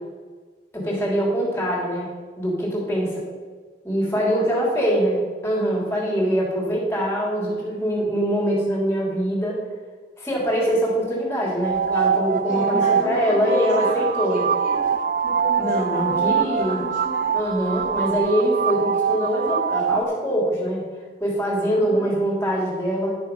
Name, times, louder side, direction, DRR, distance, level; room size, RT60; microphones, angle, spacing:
voice 1, 0.7-3.2 3.8-9.6 10.2-14.4 15.6-16.8 17.3-20.9 21.2-23.2, equal, 15° left, -4 dB, 3.0 m, -23 dB
voice 2, 4.1-4.8 12.4-17.4 21.6-22.2, left 1 dB, 40° left, -5 dB, 2.0 m, -34 dB
sound 1, 11.6-20.0, right 6 dB, 50° right, 0.4 m, -23 dB
11.0 x 6.7 x 5.4 m, 1.5 s
head